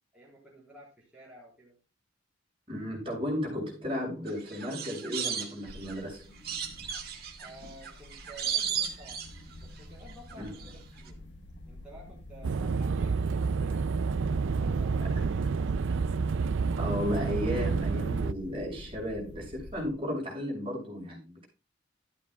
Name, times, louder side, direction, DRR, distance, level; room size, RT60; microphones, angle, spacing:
voice 1, 0.1-1.8 7.4-9.2 9.6-10.7 11.0-11.2 11.7-13.3 13.6-13.9 14.2-15.9, right 1 dB, 5° right, -7 dB, 4.2 m, -52 dB
voice 2, 2.7-6.3 10.4-10.6 16.8-21.5, left 1 dB, 30° right, -1 dB, 6.3 m, -34 dB
sound 1, 4.2-6.0 6.4-9.8 10.1-10.7 11.0-11.1, right 8 dB, 50° right, 1.9 m, -35 dB
sound 2, 5.7-19.9, left 1 dB, 60° left, 1.5 m, -48 dB
sound 3, 12.4-18.3, right 4 dB, 70° right, 0.4 m, -29 dB
13.0 x 12.0 x 2.4 m, 0.30 s
head